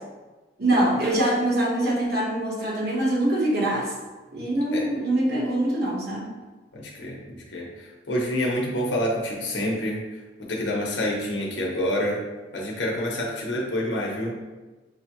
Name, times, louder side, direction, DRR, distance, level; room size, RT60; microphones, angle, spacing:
voice 1, 0.6-3.9 4.3-6.4, right 1 dB, 55° right, -4 dB, 1.1 m, -24 dB
voice 2, 6.7-10.0 10.4-12.2 12.5-14.4, left 1 dB, 75° left, -3 dB, 0.9 m, -27 dB
6.7 x 2.2 x 2.9 m, 1.2 s
head